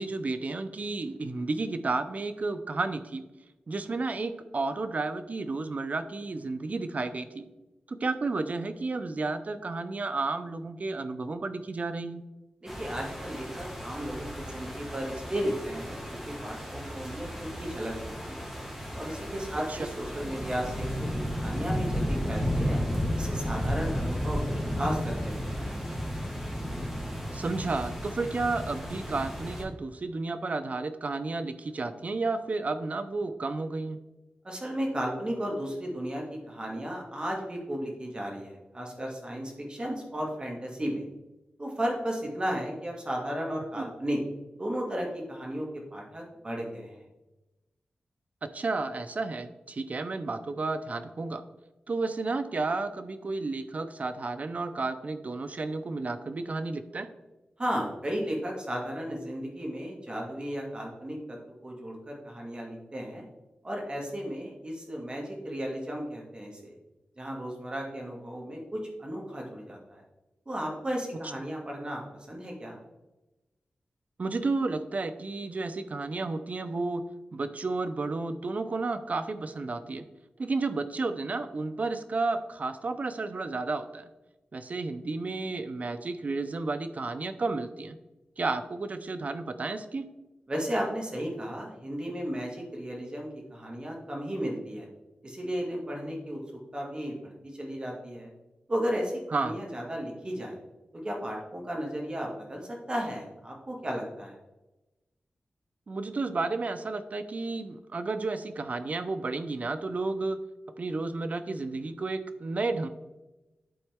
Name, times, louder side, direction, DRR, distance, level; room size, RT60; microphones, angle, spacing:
voice 1, 0.0-3.3 3.7-7.4 7.9-12.2 19.7-19.8 27.3-34.0 43.8-43.9 48.4-51.4 51.9-57.1 74.2-77.0 77.3-80.0 80.4-84.1 84.5-88.0 88.4-90.1 99.3-99.6 105.9-110.4 110.8-112.9, right 3 dB, 50° right, 9 dB, 0.6 m, -32 dB
voice 2, 12.6-18.0 18.3-18.5 19.0-22.8 23.1-25.7 34.4-41.1 41.6-44.2 44.6-47.0 57.6-61.4 61.6-63.3 63.6-66.7 67.2-70.0 70.5-72.0 72.3-72.8 90.5-94.9 95.2-96.4 96.7-98.3 98.7-100.6 100.9-104.3, equal, 30° right, -1 dB, 2.1 m, -34 dB
sound 1, 12.7-29.6, equal, 10° right, 1.9 m, -33 dB
11.0 x 4.2 x 3.6 m, 1.0 s
wide cardioid pair, 75°, 3 cm